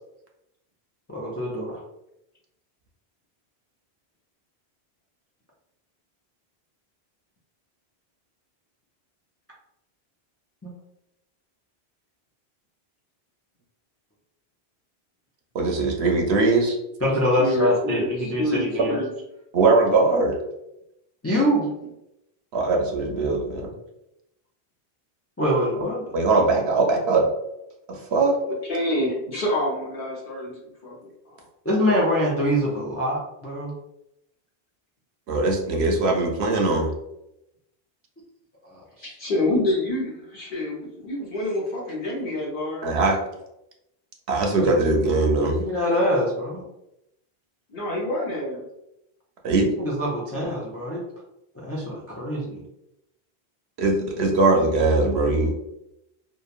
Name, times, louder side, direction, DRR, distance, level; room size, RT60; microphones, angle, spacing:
voice 1, 1.1-1.8 10.6-10.7 17.0-19.0 21.2-21.7 25.4-26.1 31.6-33.7 38.6-39.2 44.6-44.7 45.5-46.6 49.6-51.0 51.5-52.6, equal, 25° left, -5 dB, 0.3 m, -24 dB
voice 2, 15.5-16.8 19.5-20.4 22.5-23.7 26.1-27.3 27.9-28.4 35.3-36.9 42.8-43.2 44.3-45.6 49.4-49.7 53.8-55.5, right 3 dB, 90° right, 1 dB, 0.9 m, -21 dB
voice 3, 17.4-19.1 28.5-30.6 30.8-31.0 31.3-31.4 39.0-42.9 47.7-48.6, left 1 dB, 60° left, -3 dB, 0.8 m, -27 dB
2.9 x 2.2 x 2.4 m, 0.84 s
omnidirectional pair, 1.1 m